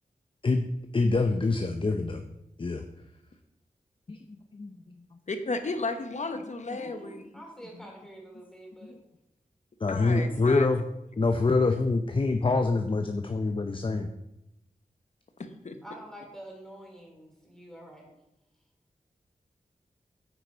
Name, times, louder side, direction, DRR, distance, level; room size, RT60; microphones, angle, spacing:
voice 1, 0.9-2.2 2.6-2.8 4.1-4.2 4.5-5.0 6.7-6.8 8.8-8.9 9.8-10.8 11.2-14.1, left 3 dB, 35° left, 6 dB, 0.6 m, -25 dB
voice 2, 5.3-7.2 9.9-10.7 11.6-11.7 15.4-15.8, left 3 dB, 55° left, 7 dB, 0.9 m, -34 dB
voice 3, 6.7-9.0 10.0-10.4 15.8-18.1, right 1 dB, 5° left, -1 dB, 2.9 m, -47 dB
9.0 x 4.7 x 4.0 m, 0.88 s
cardioid pair, 45°, 15 cm